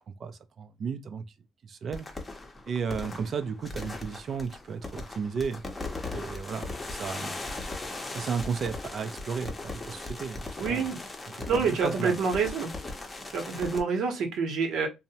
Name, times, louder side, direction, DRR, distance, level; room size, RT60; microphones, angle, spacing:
voice 1, 0.1-1.3 1.6-2.1 2.7-5.6 6.1-7.4 8.1-10.9 11.3-12.2, right 6 dB, 50° right, 0.4 m, -34 dB
sound 1, 1.9-13.8, left 2 dB, 20° left, 0.6 m, -38 dB
voice 2, 10.6-11.0 11.5-12.7 13.3-14.9, right 5 dB, 75° right, 0.8 m, -27 dB
2.7 x 2.0 x 2.7 m
cardioid pair, 100°, 0 cm